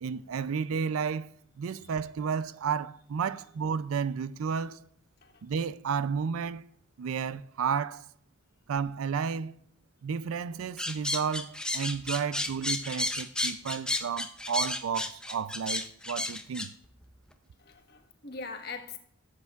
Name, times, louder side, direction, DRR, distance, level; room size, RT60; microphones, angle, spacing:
voice 1, 0.0-1.3 1.6-4.8 5.4-6.6 7.0-8.1 8.7-9.6 10.0-16.7, right 6 dB, 90° right, 0.4 m, -32 dB
sound 1, 10.8-16.7, left 1 dB, 5° left, 0.5 m, -32 dB
voice 2, 17.6-19.0, left 4 dB, 50° left, 1.2 m, -42 dB
15.0 x 8.1 x 2.4 m
head